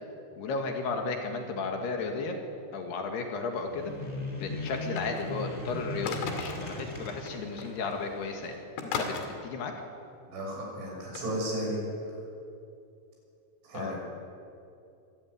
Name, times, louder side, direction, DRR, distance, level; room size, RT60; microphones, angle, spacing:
voice 1, 0.4-2.4 2.7-3.9 4.4-9.7 13.7-13.9, left 4 dB, 65° left, 4 dB, 3.6 m, -34 dB
sound 1, 3.6-8.6, left 2 dB, 5° left, 3.0 m, -39 dB
sound 2, 4.6-5.4 6.1-6.7 7.6-7.7 7.9-8.2 8.8-9.3 11.2-11.3, left 5 dB, 90° left, 4.6 m, -36 dB
voice 2, 10.2-12.1 13.6-14.0, right 1 dB, 75° right, -2 dB, 9.0 m, -34 dB
24.5 x 15.5 x 9.6 m, 2.6 s
omnidirectional pair, 5.4 m